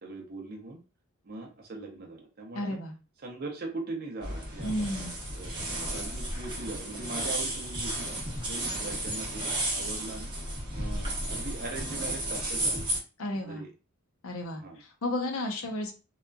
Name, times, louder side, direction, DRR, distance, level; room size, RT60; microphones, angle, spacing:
voice 1, 0.0-0.8 1.2-2.8 3.2-4.9 5.3-5.6 5.9-8.1 8.5-10.3 10.7-12.9 13.4-13.7 14.6-14.8, right 3 dB, 45° right, 0 dB, 0.7 m, -40 dB
voice 2, 2.5-3.0 4.6-5.1 13.2-13.6 14.2-16.0, left 1 dB, 75° left, 3 dB, 0.7 m, -33 dB
sound 1, 4.2-13.0, right 1 dB, 20° right, 0.9 m, -33 dB
2.8 x 2.3 x 2.2 m, 0.31 s
head